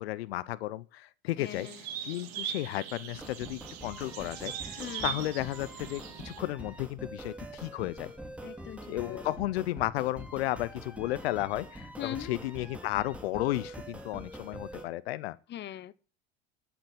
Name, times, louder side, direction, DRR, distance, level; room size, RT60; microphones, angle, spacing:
voice 1, 0.0-8.1 8.9-15.4, left 16 dB, 90° left, 0.6 m, -34 dB
voice 2, 1.4-1.8 4.8-5.2 8.4-9.2 12.0-12.4 15.5-15.9, left 11 dB, 35° left, 0.8 m, -40 dB
sound 1, 1.4-6.4, right 10 dB, 80° right, 2.6 m, -40 dB
sound 2, 3.1-14.9, right 1 dB, 5° right, 2.6 m, -45 dB
11.5 x 7.0 x 7.3 m
supercardioid pair, 95°, 30 cm